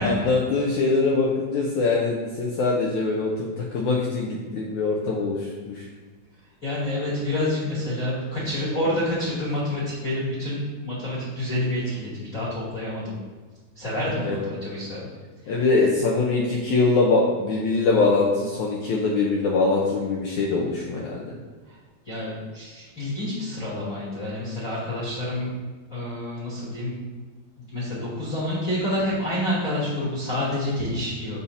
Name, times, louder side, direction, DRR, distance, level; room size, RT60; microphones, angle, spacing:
voice 1, 0.0-5.9 14.2-14.4 15.5-21.3, left 3 dB, 80° left, -3 dB, 1.7 m, -23 dB
voice 2, 6.6-13.2 13.7-15.1 22.0-25.5 25.9-27.0 27.6-31.4, left 1 dB, 25° left, -9 dB, 2.5 m, -28 dB
14.5 x 5.6 x 2.8 m, 1.4 s
omnidirectional pair, 4.6 m